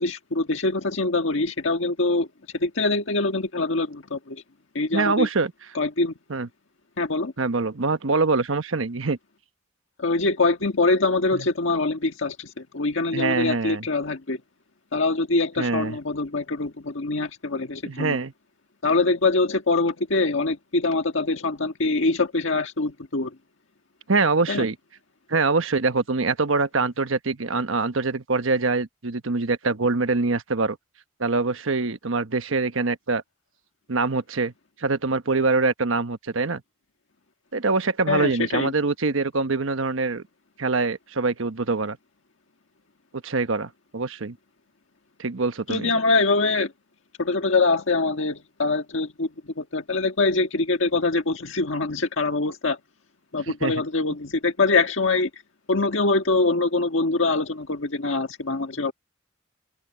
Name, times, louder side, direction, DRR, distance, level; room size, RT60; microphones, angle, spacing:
voice 1, 0.0-2.3 2.5-4.4 4.7-5.3 5.7-6.1 7.0-7.3 10.0-14.4 14.9-18.2 18.8-23.3 24.5-24.6 38.1-38.7 45.7-46.7 47.2-49.3 49.6-52.8 53.3-55.4 55.7-58.9, left 3 dB, 80° left, 1.5 m, -24 dB
voice 2, 4.9-5.5 6.3-6.5 7.4-9.2 11.3-11.5 13.1-13.8 15.6-16.0 17.8-18.3 24.1-24.8 25.3-30.8 31.2-33.2 33.9-34.5 34.8-36.6 37.5-40.2 40.6-42.0 43.2-44.4 45.2-45.9 53.5-53.7, right 3 dB, 85° right, 1.1 m, -24 dB
head